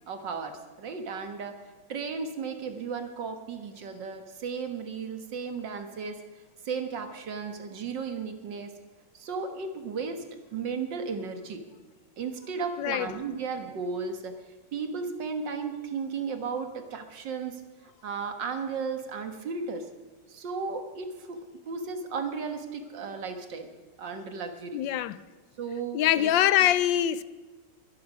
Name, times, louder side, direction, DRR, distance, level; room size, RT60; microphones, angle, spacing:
voice 1, 0.1-1.5 1.9-6.2 6.6-8.7 9.1-10.2 10.5-11.6 12.2-14.3 14.7-17.6 18.0-19.9 20.3-21.4 21.7-23.7 24.0-24.8 25.6-26.3, right 5 dB, 75° right, 2.1 m, -34 dB
voice 2, 12.8-13.1 24.7-25.2 25.9-27.2, left 12 dB, 90° left, 1.4 m, -24 dB
23.0 x 10.5 x 5.5 m
omnidirectional pair, 2.0 m